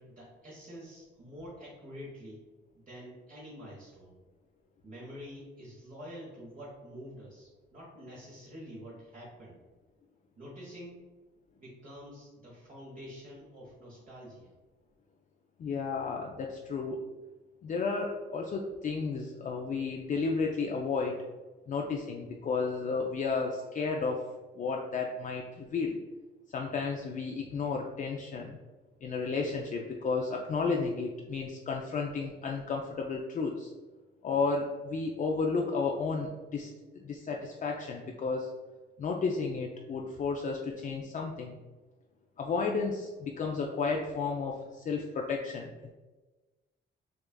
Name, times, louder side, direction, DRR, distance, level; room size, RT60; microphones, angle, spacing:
voice 1, 0.0-2.4 2.7-4.1 4.8-9.6 10.4-11.0 11.6-14.5, equal, 40° right, -6 dB, 1.1 m, -47 dB
voice 2, 15.6-17.0 17.6-21.2 21.7-24.2 24.6-26.0 26.5-28.6 29.0-33.7 34.2-38.5 39.0-41.6 42.4-45.9, left 4 dB, 40° left, 0 dB, 0.4 m, -32 dB
6.2 x 2.3 x 2.2 m, 1.2 s
cardioid pair, 90°, 20 cm